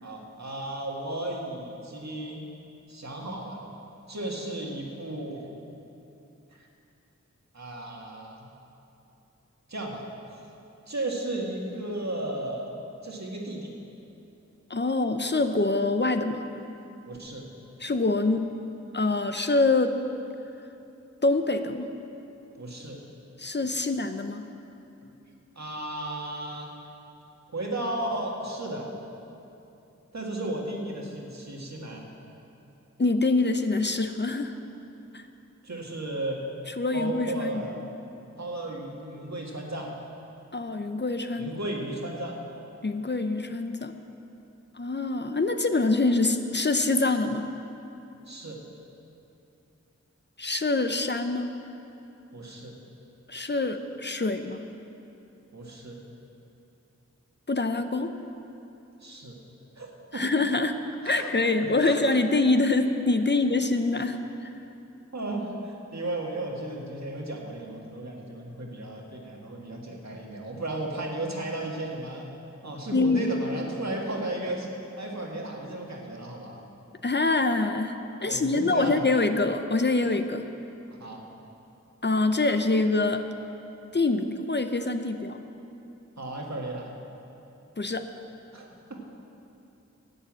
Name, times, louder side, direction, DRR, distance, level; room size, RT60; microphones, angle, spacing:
voice 1, 0.0-2.4 2.9-3.6 4.1-5.5 6.5-6.7 7.5-8.5 9.7-10.0 10.9-12.7 13.0-13.7 17.1-17.5 22.6-23.0 25.6-26.7 27.5-28.9 30.1-32.0 35.6-36.4 36.9-37.8 38.4-39.9 41.4-42.4 48.3-48.6 52.3-52.7 55.5-56.0 59.0-59.4 59.8-60.2 61.0-61.3 61.8-62.1 65.1-72.3 72.6-74.7 75.0-76.6 78.3-79.0 80.9-81.2 86.2-86.9 88.5-89.0, right 1 dB, 65° right, -1 dB, 2.0 m, -34 dB
voice 2, 14.7-16.4 17.8-18.5 18.9-20.0 21.2-21.9 23.4-24.5 33.0-34.5 35.1-35.2 36.8-37.6 40.5-41.5 42.8-43.9 44.8-47.5 50.4-51.5 53.3-54.6 57.5-58.1 60.1-60.7 61.0-64.5 72.9-73.2 77.0-78.0 78.2-80.4 82.0-83.2 83.9-85.4 87.8-88.1, left 3 dB, 35° left, 7 dB, 0.7 m, -25 dB
11.5 x 8.2 x 7.6 m, 2.8 s
wide cardioid pair, 40°, 29 cm